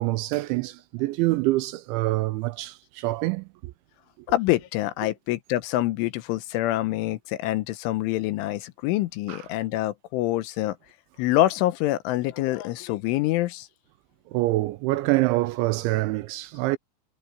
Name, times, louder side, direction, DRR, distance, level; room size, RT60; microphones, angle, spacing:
voice 1, 0.0-3.7 9.3-9.4 14.3-16.8, right 19 dB, 85° right, 2.7 m, -25 dB
voice 2, 4.3-10.8 11.2-13.7, left 15 dB, 85° left, 3.3 m, -26 dB
omnidirectional pair, 5.7 m